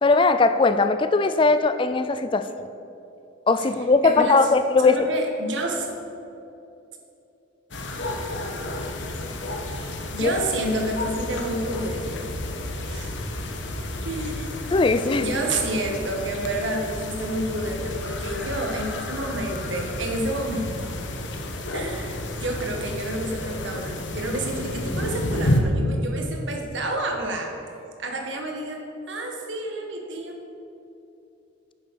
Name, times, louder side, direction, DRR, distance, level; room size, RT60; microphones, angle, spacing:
voice 1, 0.0-2.5 3.5-5.0 10.2-10.3 14.7-15.3, left 3 dB, 25° left, 11 dB, 0.3 m, -19 dB
voice 2, 4.0-4.5 4.8-5.9 10.1-12.6 12.9-13.1 14.0-14.5 15.2-20.9 21.7-27.5 28.0-30.4, right 1 dB, 70° right, 2 dB, 1.6 m, -29 dB
sound 1, 7.7-25.6, left 1 dB, 70° left, 1.1 m, -31 dB
9.7 x 7.0 x 6.8 m, 2.8 s
head